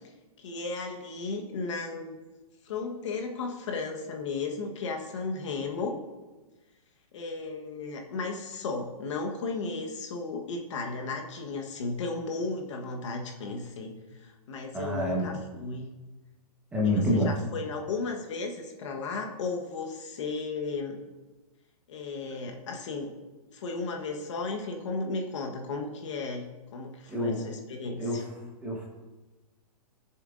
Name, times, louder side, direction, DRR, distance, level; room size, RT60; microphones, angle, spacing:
voice 1, 0.4-2.2 2.6-6.0 7.1-15.9 16.8-21.0 21.9-23.1 23.5-28.2, left 3 dB, 50° left, 3 dB, 1.2 m, -35 dB
voice 2, 14.7-15.3 16.7-17.3 27.1-27.4 28.0-28.2 28.6-28.9, left 1 dB, 5° right, -3 dB, 1.1 m, -27 dB
17.0 x 6.9 x 2.5 m, 1.2 s
hypercardioid pair, 165°, 20 cm